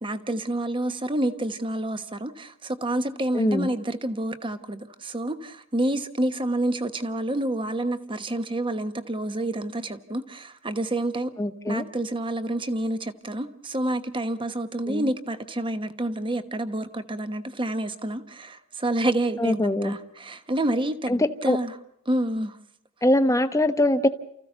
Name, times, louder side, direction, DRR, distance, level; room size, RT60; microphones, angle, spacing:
voice 1, 0.0-11.3 11.7-21.8 22.1-22.6, right 1 dB, 25° right, 1.1 m, -28 dB
voice 2, 3.3-3.7 11.4-11.8 14.9-15.1 19.4-19.9 21.1-21.2 21.5-21.6 23.0-24.1, left 1 dB, 15° left, 0.9 m, -22 dB
29.5 x 15.0 x 6.9 m
head